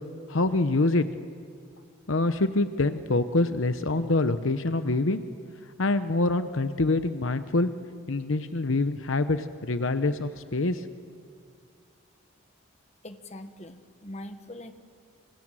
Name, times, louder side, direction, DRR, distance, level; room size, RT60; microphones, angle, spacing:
voice 1, 0.3-1.1 2.1-5.2 5.8-7.7 8.1-10.8, left 2 dB, 70° left, 10 dB, 0.9 m, -25 dB
voice 2, 13.0-14.7, left 1 dB, 30° left, 8 dB, 1.4 m, -42 dB
27.5 x 26.0 x 7.6 m, 2.2 s
head